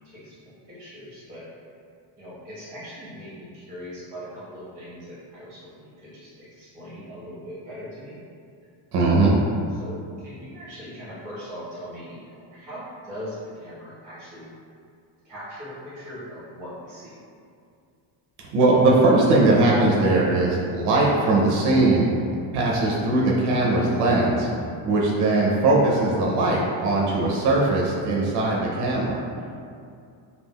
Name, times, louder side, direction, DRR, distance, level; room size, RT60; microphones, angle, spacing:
voice 1, 0.0-1.4 2.2-8.2 9.7-14.5 15.2-17.2 29.7-29.9, equal, 15° right, -10 dB, 0.7 m, -40 dB
voice 2, 8.9-9.3 18.5-22.1 22.5-24.5 24.9-29.2, right 2 dB, 60° right, -4 dB, 0.5 m, -20 dB
3.4 x 2.3 x 2.2 m, 2.4 s
cardioid pair, 180°, 47 cm